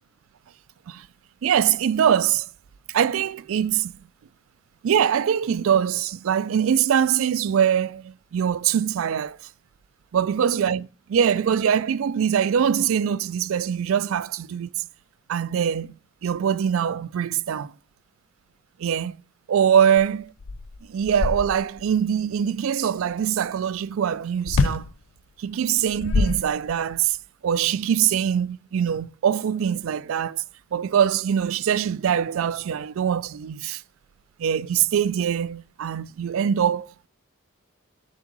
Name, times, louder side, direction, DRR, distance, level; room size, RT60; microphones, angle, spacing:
voice 1, 1.4-2.5 2.9-3.9 4.8-9.4 10.1-14.9 15.3-16.0 16.2-17.7 18.8-19.2 19.5-20.2 20.9-24.9 25.4-27.2 27.4-30.4 30.7-33.8 34.4-37.1, right 8 dB, 75° right, 0.3 m, -23 dB
sound 1, 20.0-20.1 20.4-21.9 24.5-24.9 25.8-27.0, left 4 dB, 80° left, 0.5 m, -25 dB
7.5 x 3.6 x 6.0 m
head